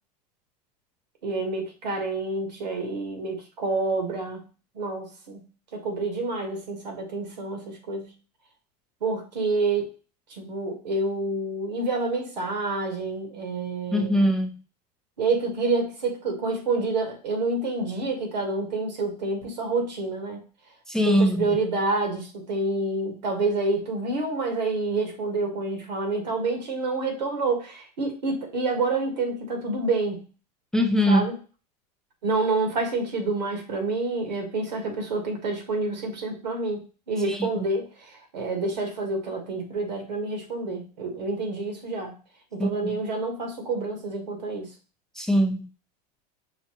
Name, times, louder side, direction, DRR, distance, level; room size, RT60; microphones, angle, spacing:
voice 1, 1.2-4.4 4.7-5.4 5.7-8.1 9.0-9.9 10.3-14.3 15.2-20.4 21.0-30.3 31.1-31.3 32.2-42.2 42.5-44.7, right 3 dB, 85° right, 2 dB, 1.5 m, -28 dB
voice 2, 13.9-14.6 20.9-21.6 30.7-31.3 37.3-37.5 42.6-43.0 45.2-45.7, equal, ahead, 4 dB, 0.4 m, -22 dB
5.6 x 2.3 x 2.9 m, 0.35 s
hypercardioid pair, 105°, 21 cm